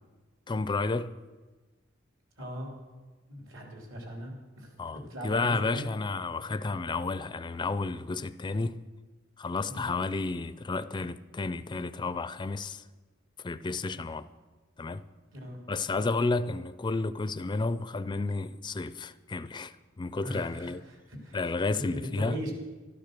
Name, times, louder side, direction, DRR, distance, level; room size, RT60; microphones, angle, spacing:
voice 1, 0.5-1.1 4.8-8.8 9.4-12.8 13.4-14.3 14.8-15.0 15.7-20.8 21.3-22.4, left 3 dB, 20° left, 0.4 m, -31 dB
voice 2, 2.4-2.7 3.3-5.9 9.7-9.9 15.3-15.6 20.2-21.4 21.7-22.5, equal, 70° right, 3.3 m, -40 dB
12.5 x 12.0 x 6.7 m
head